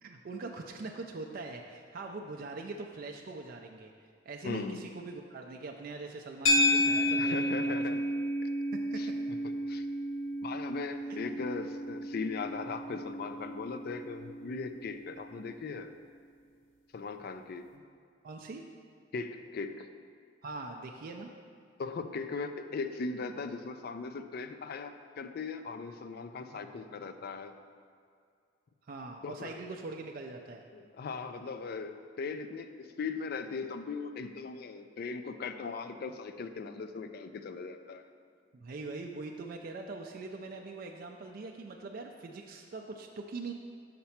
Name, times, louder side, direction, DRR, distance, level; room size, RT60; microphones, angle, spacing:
voice 1, 0.0-3.9 4.3-8.0 8.7-9.1 11.1-11.4 17.7-17.8 18.2-18.6 20.4-21.3 26.5-26.7 28.8-30.6 38.5-43.5, right 3 dB, 50° right, 2 dB, 0.4 m, -42 dB
voice 2, 4.4-4.8 7.2-8.0 9.0-9.1 9.7-9.9 10.4-15.9 16.9-17.7 19.1-19.9 21.8-27.6 29.2-29.6 30.7-38.1, left 4 dB, 55° left, 9 dB, 0.3 m, -39 dB
sound 1, 6.5-14.9, left 1 dB, 85° left, 0.7 m, -31 dB
5.8 x 4.2 x 5.6 m, 2.2 s
head